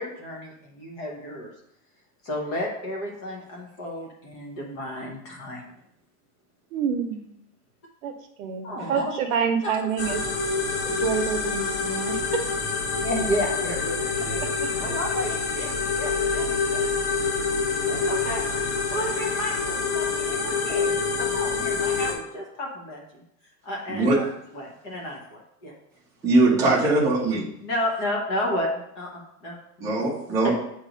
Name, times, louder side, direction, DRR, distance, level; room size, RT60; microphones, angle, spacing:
voice 1, 0.0-1.5 2.2-5.7 8.6-9.2 9.6-10.1 13.0-14.4 14.7-15.7 16.0-16.8 17.8-18.4 18.9-23.2 23.6-24.3 24.5-25.7 27.6-29.9 30.4-30.5, left 1 dB, 25° left, -1 dB, 0.8 m, -32 dB
voice 2, 6.7-7.3 8.0-8.1 8.4-10.2 10.8-12.4 14.6-14.7, right 7 dB, 55° right, 5 dB, 0.9 m, -27 dB
sound 1, 10.0-22.1, left 4 dB, 75° left, 1.4 m, -26 dB
voice 3, 26.2-27.4 29.8-30.5, right 2 dB, 5° right, -6 dB, 0.7 m, -21 dB
7.5 x 3.0 x 5.0 m, 0.76 s
supercardioid pair, 170°, 48 cm